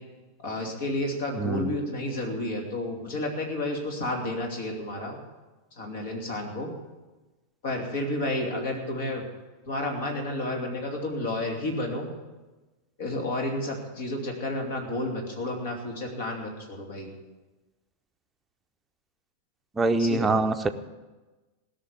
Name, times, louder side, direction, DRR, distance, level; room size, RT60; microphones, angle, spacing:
voice 1, 0.4-5.2 5.8-6.7 7.6-9.2 9.7-12.1 13.0-17.1 20.0-20.3, left 1 dB, 55° left, 1 dB, 3.0 m, -31 dB
voice 2, 1.4-1.7 19.8-20.7, right 2 dB, 15° right, 7 dB, 0.8 m, -24 dB
16.5 x 6.6 x 9.4 m, 1.2 s
figure-of-eight pair, 90°, 0 cm